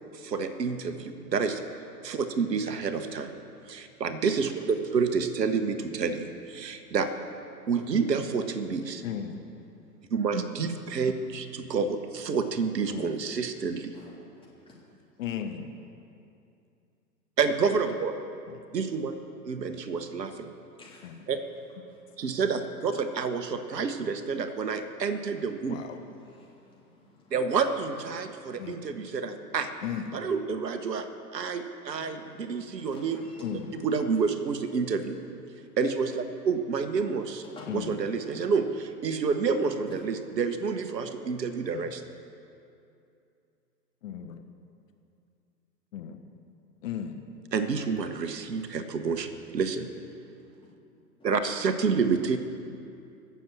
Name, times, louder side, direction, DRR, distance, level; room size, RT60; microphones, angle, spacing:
voice 1, 0.1-1.6 2.0-3.3 3.7-7.1 7.7-9.0 10.1-13.9 17.4-18.1 18.7-19.2 19.4-20.5 21.3-21.4 22.2-25.8 27.3-29.7 30.1-31.1 31.3-33.2 33.7-35.2 35.8-37.4 37.7-42.0 47.5-49.9 51.2-52.4, right 5 dB, 75° right, 9 dB, 1.2 m, -29 dB
voice 2, 9.0-9.6 12.9-13.2 15.2-15.7 18.5-18.6 21.0-21.2 25.7-26.0 28.6-29.0 29.8-30.2 33.4-33.7 37.7-38.0 41.7-41.9 44.0-44.4 45.9-46.2 46.8-47.2, left 8 dB, 50° left, 6 dB, 1.2 m, -36 dB
voice 3, 13.9-14.7 20.8-21.3 21.8-22.4 25.8-27.3 28.1-30.1 31.9-34.3 34.8-35.0 35.5-35.8 37.4-38.1 39.9-40.0 50.6-50.8 51.2-51.3, left 3 dB, 10° left, -5 dB, 3.3 m, -53 dB
17.0 x 7.1 x 7.5 m, 2.6 s
figure-of-eight pair, 110°, 50 cm